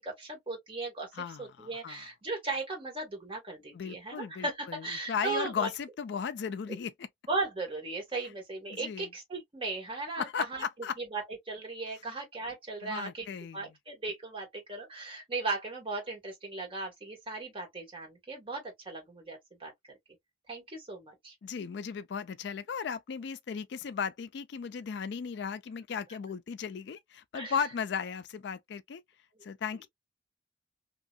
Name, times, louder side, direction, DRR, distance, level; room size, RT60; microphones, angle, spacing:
voice 1, 0.0-5.7 7.3-10.6 11.0-13.3 13.5-19.7 20.5-21.3 27.3-27.6, right 3 dB, 30° right, 1.7 m, -37 dB
voice 2, 1.1-2.1 3.7-7.1 8.7-9.1 10.2-11.0 12.8-13.7 21.4-29.0 29.4-29.9, left 6 dB, 65° left, 0.4 m, -36 dB
2.9 x 2.7 x 2.4 m
head